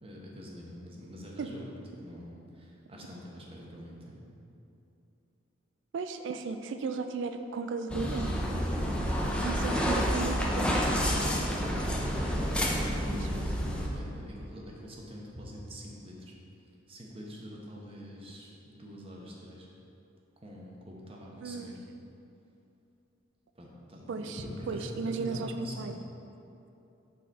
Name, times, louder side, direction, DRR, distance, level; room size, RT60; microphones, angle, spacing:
voice 1, 0.0-1.7 2.0-4.2 11.6-16.3 16.9-19.7 20.4-21.7 23.6-25.9, equal, 30° right, -3 dB, 0.9 m, -45 dB
voice 2, 5.9-8.3 9.4-10.9 11.8-12.1 13.1-13.3 21.4-21.7 24.1-26.0, right 4 dB, 60° right, 7 dB, 0.3 m, -35 dB
sound 1, 7.9-13.9, equal, 5° left, 0.5 m, -29 dB
8.2 x 4.0 x 4.1 m, 2.8 s
head